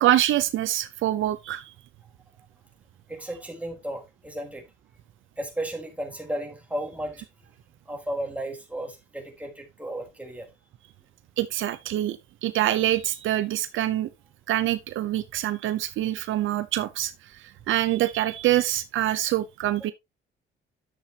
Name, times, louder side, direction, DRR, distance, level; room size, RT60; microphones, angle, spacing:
voice 1, 0.0-1.7 11.4-14.1 14.5-19.9, right 13 dB, 80° right, 0.8 m, -25 dB
voice 2, 3.1-4.7 5.4-7.2 7.9-10.5, right 1 dB, 5° right, 4.0 m, -34 dB
11.0 x 7.6 x 2.9 m
cardioid pair, 90°, 20 cm